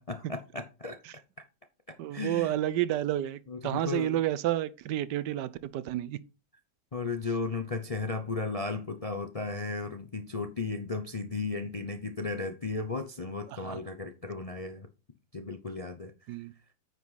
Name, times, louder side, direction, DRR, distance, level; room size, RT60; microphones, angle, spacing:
voice 1, 0.1-1.0 1.9-2.5 3.5-4.2 6.9-14.9 15.3-16.1, left 3 dB, 50° left, 0.4 m, -35 dB
voice 2, 2.0-6.2 13.5-13.8 16.3-16.5, right 13 dB, 75° right, 1.2 m, -30 dB
9.5 x 5.4 x 4.1 m
omnidirectional pair, 1.9 m